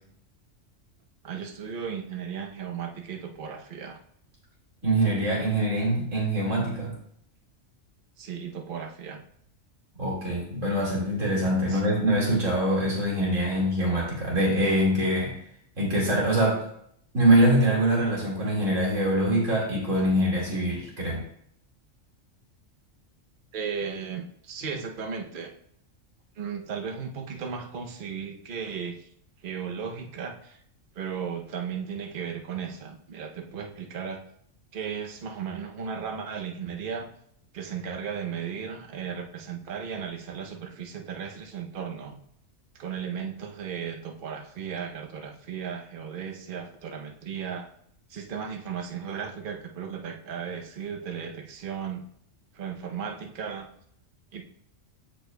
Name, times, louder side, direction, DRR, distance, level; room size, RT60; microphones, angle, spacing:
voice 1, 1.2-4.0 8.2-9.2 11.6-11.8 23.5-25.5 26.4-29.1 29.4-30.6 30.9-34.2 34.7-37.1 37.5-42.2 42.7-47.7 48.1-52.0 52.5-53.7 54.3-54.5, right 7 dB, 50° right, 3 dB, 0.8 m, -35 dB
voice 2, 4.8-6.9 10.0-15.3 15.8-16.6 17.1-21.2, right 1 dB, 80° right, -4 dB, 2.5 m, -24 dB
12.5 x 4.3 x 2.2 m, 0.69 s
omnidirectional pair, 1.3 m